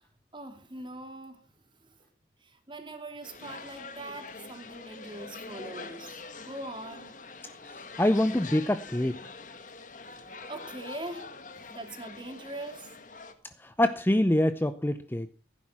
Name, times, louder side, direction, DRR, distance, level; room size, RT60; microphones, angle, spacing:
voice 1, 0.3-1.4 2.7-7.2 10.5-11.3 11.7-12.9, right 2 dB, 25° right, 2.7 m, -42 dB
sound 1, 3.2-13.3, left 4 dB, 45° left, 1.8 m, -44 dB
voice 2, 7.7-9.2 13.6-15.3, left 1 dB, 10° left, 0.6 m, -25 dB
16.0 x 9.9 x 5.8 m
head